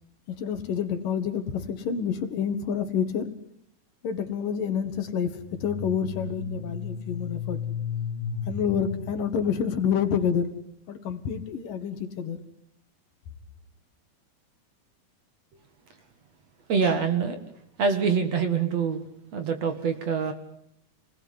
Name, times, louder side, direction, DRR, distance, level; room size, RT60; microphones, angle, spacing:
voice 1, 0.3-3.3 4.0-7.6 8.4-10.5 10.9-12.4, left 7 dB, 65° left, 9 dB, 3.3 m, -28 dB
sound 1, 5.4-10.3, left 5 dB, 25° left, 1.1 m, -34 dB
voice 2, 16.7-17.4 17.8-19.0 19.3-20.3, right 6 dB, 50° right, 7 dB, 2.7 m, -25 dB
28.0 x 20.0 x 9.7 m, 0.73 s
omnidirectional pair, 4.3 m